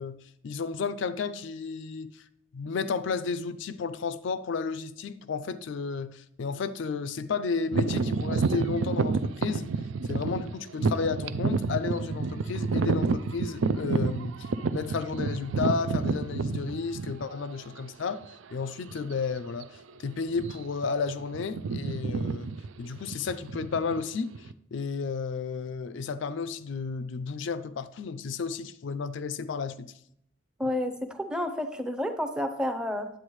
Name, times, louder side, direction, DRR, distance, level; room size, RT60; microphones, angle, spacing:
voice 1, 0.0-2.2 2.5-9.7 10.0-18.2 18.5-22.5 22.8-29.9, left 5 dB, 60° left, 0.4 m, -32 dB
sound 1, 7.7-17.5 18.1-18.2 18.9-19.1 19.4-19.6 20.3-20.8 21.1-24.5, right 4 dB, 70° right, 0.4 m, -29 dB
voice 2, 30.6-33.1, left 1 dB, 5° right, 0.6 m, -30 dB
9.8 x 8.0 x 3.1 m
head